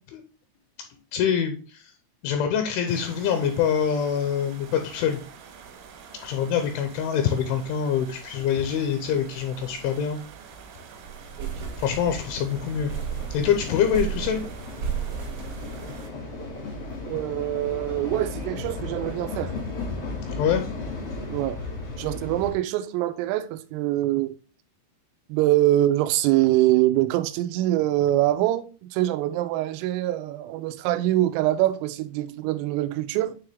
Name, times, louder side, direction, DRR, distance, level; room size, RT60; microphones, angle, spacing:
voice 1, 1.1-1.9 2.2-5.2 6.2-10.2 11.8-12.9 13.3-14.4 20.4-20.6, left 8 dB, 80° left, 3.0 m, -25 dB
sound 1, 2.9-16.1, right 7 dB, 75° right, 3.5 m, -46 dB
sound 2, 9.6-9.7 9.9-10.0 10.3-10.7 11.0-12.4 12.9-16.2, right 8 dB, 60° right, 1.6 m, -33 dB
sound 3, 10.6-22.5, left 3 dB, 60° left, 1.5 m, -36 dB
voice 2, 11.4-11.8 17.1-19.5 21.3-21.6 22.0-24.3 25.3-33.4, right 15 dB, 90° right, 3.3 m, -24 dB
9.0 x 3.4 x 3.4 m
omnidirectional pair, 5.8 m